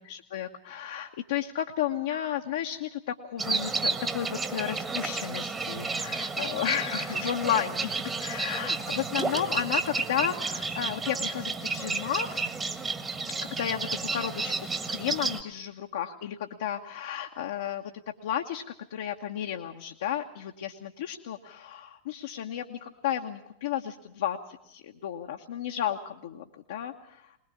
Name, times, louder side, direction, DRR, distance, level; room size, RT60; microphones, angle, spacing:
voice 1, 0.0-12.5 13.6-18.6 18.9-27.4, left 10 dB, 60° left, 1 dB, 1.2 m, -33 dB
sound 1, 3.4-15.4, right 4 dB, 15° right, 1.6 m, -32 dB
21.5 x 20.5 x 7.3 m, 0.82 s
figure-of-eight pair, 90°, 0 cm